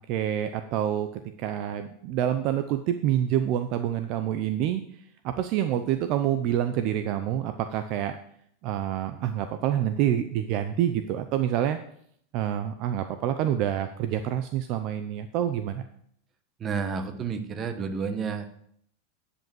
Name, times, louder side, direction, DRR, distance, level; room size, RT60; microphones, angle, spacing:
voice 1, 0.1-8.2 8.6-11.8 12.3-15.8, right 11 dB, 45° right, 9 dB, 0.6 m, -27 dB
voice 2, 16.6-18.5, right 5 dB, 25° right, 8 dB, 1.1 m, -30 dB
9.9 x 5.4 x 7.7 m, 0.67 s
supercardioid pair, 150°, 0 cm